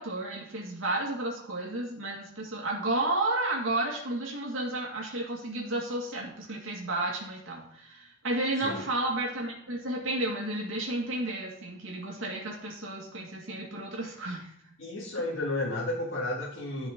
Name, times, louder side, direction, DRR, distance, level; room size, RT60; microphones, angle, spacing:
voice 1, 0.0-14.7, right 2 dB, 90° right, -2 dB, 2.0 m, -32 dB
voice 2, 14.8-16.9, left 2 dB, 75° left, -6 dB, 1.9 m, -32 dB
11.0 x 5.5 x 3.7 m, 0.68 s
head